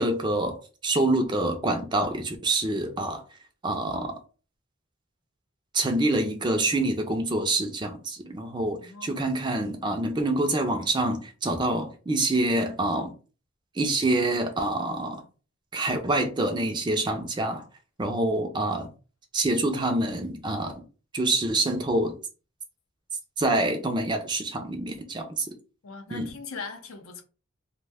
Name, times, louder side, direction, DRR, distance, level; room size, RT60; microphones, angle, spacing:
voice 1, 0.0-3.2 3.6-4.2 5.7-13.2 13.8-15.2 15.7-17.6 18.0-18.9 19.3-20.8 21.1-22.2 23.4-25.6 26.1-26.3, right 2 dB, 20° right, 0.3 m, -26 dB
voice 2, 8.7-9.2 25.8-27.2, left 5 dB, 80° left, 0.6 m, -40 dB
2.6 x 2.1 x 3.4 m
head